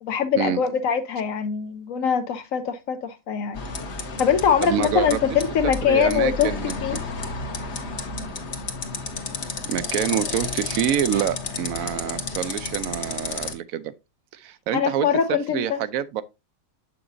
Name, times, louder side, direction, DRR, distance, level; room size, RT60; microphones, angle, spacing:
voice 1, 0.0-3.6 4.2-6.5 6.8-7.0 14.7-15.8, left 7 dB, 75° left, 1.1 m, -23 dB
sound 1, 3.5-13.5, left 4 dB, 55° left, 1.2 m, -31 dB
voice 2, 4.6-5.2 5.6-7.0 9.7-13.9 14.3-16.2, right 10 dB, 80° right, 1.0 m, -27 dB
7.2 x 5.9 x 2.6 m
omnidirectional pair, 1.5 m